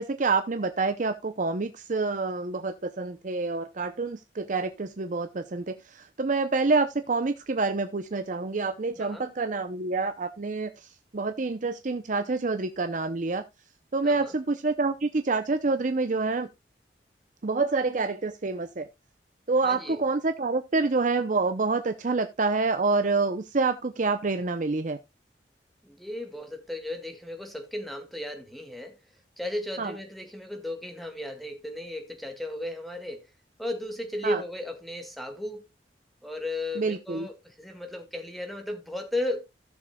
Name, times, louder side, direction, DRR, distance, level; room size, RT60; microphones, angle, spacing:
voice 1, 0.0-13.4 13.9-16.5 17.4-18.9 19.5-25.0 29.8-29.9 34.2-34.4 36.8-37.3, right 3 dB, 45° right, 0.7 m, -27 dB
voice 2, 9.0-9.3 14.0-14.3 19.6-20.0 25.8-29.0 29.4-33.3 33.6-35.6 36.2-39.5, left 1 dB, ahead, 1.8 m, -35 dB
16.0 x 6.9 x 2.3 m
head